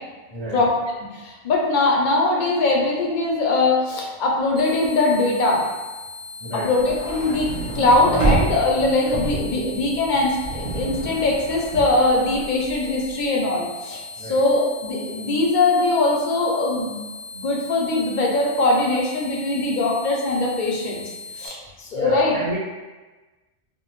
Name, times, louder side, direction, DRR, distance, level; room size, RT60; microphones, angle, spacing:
voice 1, 0.3-0.6 6.4-6.9 14.2-14.4 21.9-22.6, right 1 dB, 70° right, -11 dB, 1.8 m, -30 dB
voice 2, 1.1-5.6 6.5-7.5 7.7-17.0 17.3-21.0 21.4-22.3, left 2 dB, 55° left, -2 dB, 0.6 m, -21 dB
sound 1, 4.6-21.5, left 3 dB, 85° right, 1.0 m, -38 dB
sound 2, 6.8-13.1, right 2 dB, 40° right, 0.5 m, -28 dB
2.8 x 2.3 x 3.0 m, 1.2 s
omnidirectional pair, 1.1 m